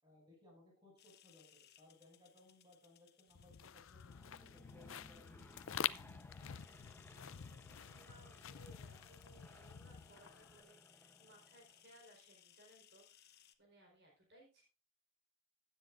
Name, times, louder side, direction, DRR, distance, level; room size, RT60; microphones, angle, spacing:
voice 1, 0.0-5.6, left 2 dB, 20° right, -1 dB, 6.9 m, -65 dB
sound 1, 1.0-13.5, left 11 dB, 50° left, 1.1 m, -67 dB
sound 2, 3.3-10.6, left 9 dB, 65° left, 0.5 m, -47 dB
Aircraft / Engine, 3.9-11.9, left 1 dB, 10° left, 0.8 m, -62 dB
voice 2, 7.3-14.6, right 1 dB, 50° right, -1 dB, 4.5 m, -64 dB
16.0 x 10.0 x 2.6 m, 0.34 s
head